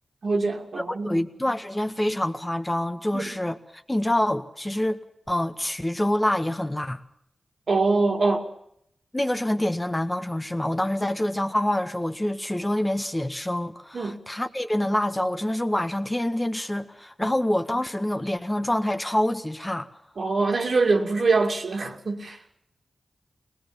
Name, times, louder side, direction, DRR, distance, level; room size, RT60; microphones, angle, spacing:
voice 1, 0.2-1.2 3.1-3.3 7.7-8.5 13.9-14.2 20.2-22.4, right 3 dB, 70° right, 2.6 m, -24 dB
voice 2, 0.9-3.6 3.9-7.0 9.1-19.9, left 1 dB, 15° left, 1.7 m, -26 dB
22.5 x 19.5 x 7.2 m
cardioid pair, 50°, 0 cm